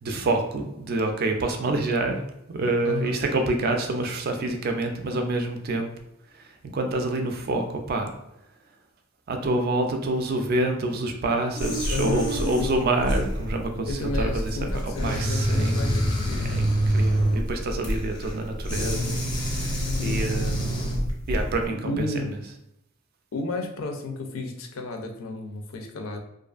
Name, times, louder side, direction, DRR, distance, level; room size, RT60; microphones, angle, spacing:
voice 1, 0.0-2.2 2.5-5.9 6.7-8.1 9.3-14.6 14.8-15.9 16.3-22.3, right 2 dB, 45° right, 4 dB, 0.3 m, -27 dB
voice 2, 2.8-3.2 11.9-12.3 12.6-12.8 13.9-16.6 20.0-20.3 21.7-22.4 23.3-26.2, left 3 dB, 75° left, 3 dB, 0.4 m, -32 dB
sound 1, 11.6-21.6, equal, 20° left, 0.4 m, -26 dB
2.4 x 2.4 x 2.3 m, 0.84 s
head